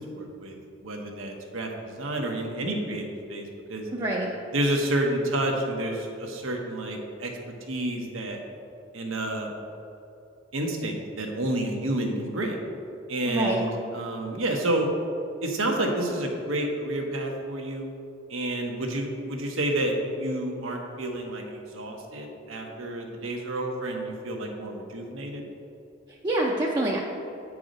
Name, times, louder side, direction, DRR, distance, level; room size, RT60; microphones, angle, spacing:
voice 1, 0.1-0.5 0.8-3.0 3.3-3.8 4.5-7.3 7.7-8.4 8.9-9.5 10.5-12.5 13.1-14.9 15.4-17.9 18.3-25.4, right 1 dB, 85° right, 1 dB, 1.2 m, -29 dB
voice 2, 3.9-4.3 13.3-13.7 26.1-27.0, right 1 dB, 20° right, -3 dB, 0.6 m, -26 dB
9.0 x 4.8 x 5.3 m, 2.8 s
head